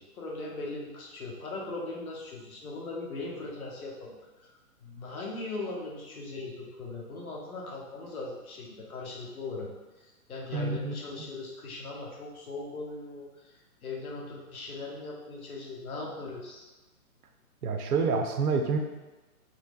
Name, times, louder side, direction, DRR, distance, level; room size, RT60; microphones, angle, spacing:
voice 1, 0.2-4.5 4.8-9.7 10.0-16.7, left 3 dB, 70° left, -2 dB, 1.1 m, -39 dB
voice 2, 10.5-10.9 17.6-18.8, right 4 dB, 75° right, 4 dB, 0.7 m, -27 dB
4.3 x 3.1 x 2.5 m, 1.1 s
hypercardioid pair, 170°, 45 cm